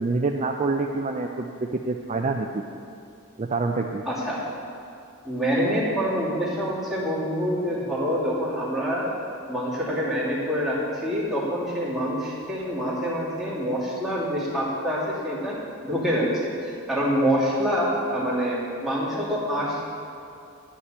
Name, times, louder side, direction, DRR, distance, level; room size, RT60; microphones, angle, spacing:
voice 1, 0.0-2.6 3.4-4.0, right 3 dB, 30° right, 3 dB, 0.4 m, -26 dB
voice 2, 4.1-4.4 5.2-9.1 9.5-15.6 15.8-19.8, equal, ahead, -9 dB, 2.7 m, -26 dB
11.0 x 5.9 x 7.9 m, 2.6 s
head